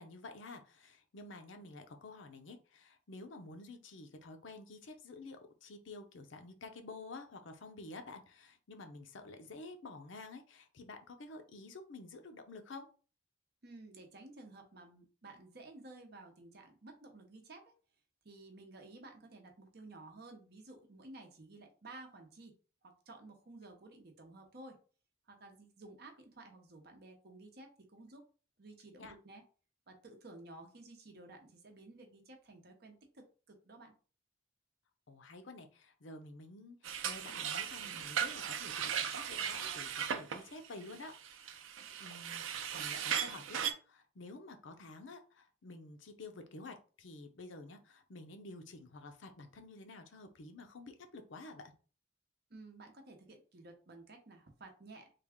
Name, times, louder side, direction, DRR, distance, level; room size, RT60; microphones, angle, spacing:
voice 1, 0.0-12.9 29.0-29.2 35.1-51.7, left 2 dB, 75° left, 6 dB, 0.6 m, -50 dB
voice 2, 13.6-17.7 18.2-22.5 22.8-24.8 25.3-28.2 28.6-29.4 29.9-33.9 52.5-55.1, right 2 dB, 55° right, 3 dB, 0.8 m, -54 dB
sound 1, 36.8-43.7, right 8 dB, 85° right, 0.4 m, -37 dB
3.3 x 2.3 x 3.5 m, 0.37 s
head